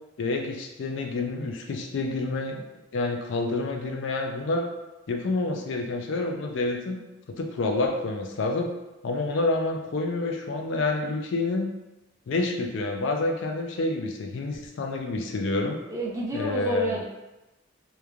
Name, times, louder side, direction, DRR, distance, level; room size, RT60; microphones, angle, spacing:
voice 1, 0.2-2.6 2.9-4.7 5.1-7.0 7.3-8.7 9.0-11.7 12.3-15.8 16.3-17.0, left 2 dB, 60° left, 2 dB, 0.4 m, -28 dB
voice 2, 15.9-17.0, right 1 dB, 15° right, -3 dB, 0.3 m, -30 dB
3.0 x 2.2 x 2.3 m, 1.0 s
head